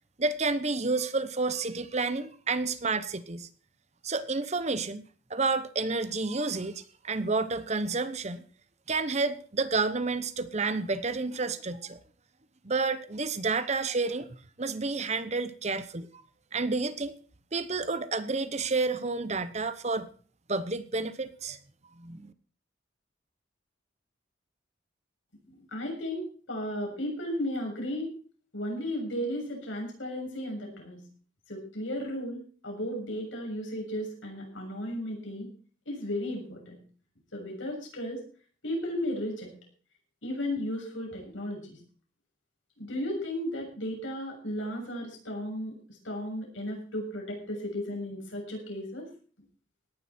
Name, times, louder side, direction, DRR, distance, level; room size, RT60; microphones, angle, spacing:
voice 1, 0.2-3.5 4.0-5.0 5.3-8.4 8.9-12.0 12.6-14.3 14.6-16.1 16.5-17.1 17.5-20.1 20.5-21.6 22.0-22.3, right 3 dB, 35° right, 13 dB, 1.0 m, -30 dB
voice 2, 25.5-28.1 28.5-31.0 31.5-35.5 35.9-36.8 37.3-38.2 38.6-39.5 40.2-41.8 42.8-49.1, left 1 dB, 80° left, 1 dB, 7.0 m, -34 dB
18.0 x 11.0 x 4.4 m, 0.42 s
head